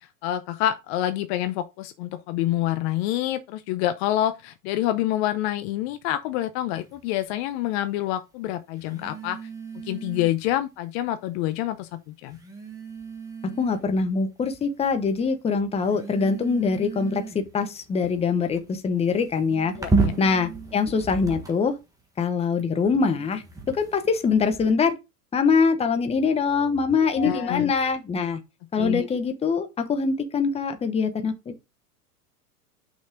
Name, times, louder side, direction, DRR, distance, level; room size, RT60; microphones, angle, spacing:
voice 1, 0.2-9.4 9.8-12.4 19.8-20.1 27.2-27.7 28.8-29.1, left 13 dB, 45° left, 0.8 m, -27 dB
sound 1, 6.7-7.0 8.8-10.6 11.5-11.6 12.3-14.0 14.5-15.0 15.8-21.8 22.6-24.7, right 4 dB, 5° right, 1.5 m, -33 dB
voice 2, 13.6-19.7 20.2-21.7 22.2-24.9 25.3-28.4 28.7-31.6, left 5 dB, 15° left, 0.9 m, -23 dB
6.2 x 5.6 x 3.8 m
hypercardioid pair, 115°, 47 cm